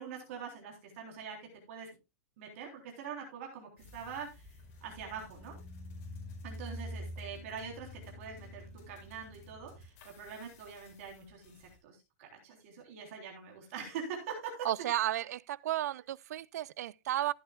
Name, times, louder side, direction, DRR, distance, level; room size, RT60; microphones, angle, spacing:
voice 1, 0.0-1.4 1.7-1.9 2.4-4.5 4.8-5.6 6.4-14.9, right 6 dB, 55° right, 3.5 m, -44 dB
sound 1, 3.8-11.7, left 1 dB, 45° left, 4.7 m, -48 dB
voice 2, 14.6-17.3, right 13 dB, 90° right, 0.4 m, -33 dB
15.0 x 8.8 x 2.3 m
supercardioid pair, 165°, 9 cm